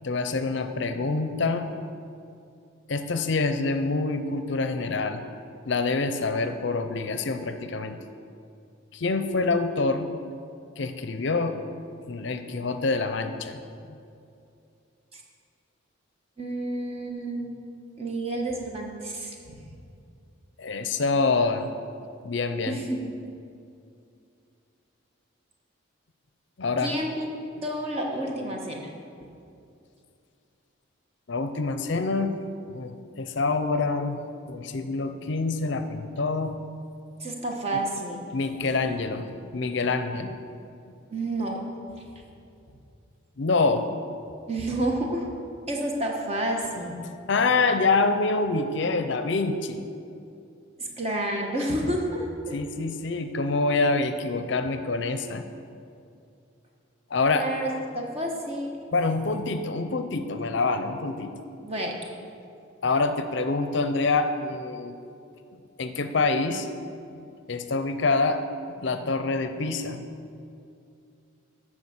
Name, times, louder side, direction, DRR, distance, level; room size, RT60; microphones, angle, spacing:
voice 1, 0.0-1.7 2.9-5.2 5.6-8.0 8.9-10.1 10.8-11.6 12.0-13.6 13.9-14.0 20.6-21.7 22.2-22.8 26.6-27.0 31.3-32.3 32.7-34.2 34.5-36.6 37.7-37.8 38.3-40.4 43.4-43.9 47.3-49.9 52.5-55.5 57.1-57.5 58.9-61.3 62.8-65.0 65.8-66.7 67.5-68.4 68.8-70.1, left 3 dB, 60° left, 9 dB, 0.6 m, -26 dB
voice 2, 16.4-17.5 18.0-19.6 22.6-23.1 26.8-28.9 29.2-29.3 37.2-38.2 41.1-41.7 41.9-42.0 44.5-45.3 45.7-47.0 50.8-52.6 57.3-58.8 61.6-62.0, right 1 dB, 30° right, 0 dB, 1.3 m, -30 dB
12.5 x 4.8 x 7.2 m, 2.6 s
head